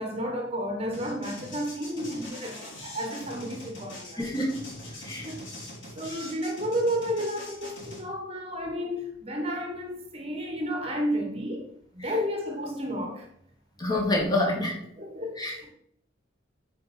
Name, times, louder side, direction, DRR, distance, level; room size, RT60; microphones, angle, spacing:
voice 1, 0.0-4.2 5.0-5.4 5.9-11.7 11.9-13.3 15.0-15.7, equal, 30° right, 1.2 m, -32 dB
sound 1, 0.9-8.0, left 1 dB, 70° left, 3.6 m, -42 dB
voice 2, 4.2-4.6 5.0-5.3 12.0-12.1 13.8-14.8 15.4-15.6, left 1 dB, 20° left, 1.7 m, -27 dB
9.0 x 4.7 x 4.3 m
head